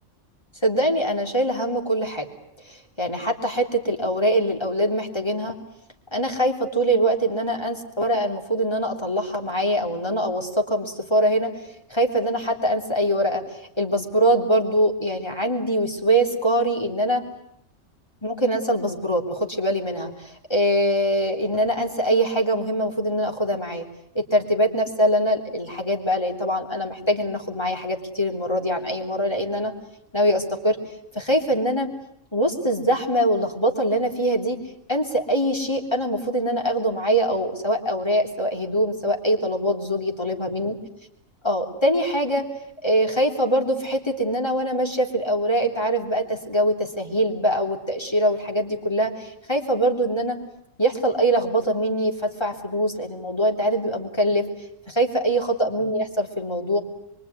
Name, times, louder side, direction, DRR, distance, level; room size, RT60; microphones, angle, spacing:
voice 1, 0.6-2.3 2.6-5.6 6.1-11.5 11.9-17.2 18.2-23.9 24.2-29.7 30.1-30.8 31.1-31.9 32.3-34.6 34.9-40.8 41.4-42.5 42.8-50.4 50.8-54.4 54.9-56.8, right 1 dB, 20° left, 2 dB, 3.3 m, -23 dB
25.0 x 24.0 x 9.6 m, 0.73 s
omnidirectional pair, 1.3 m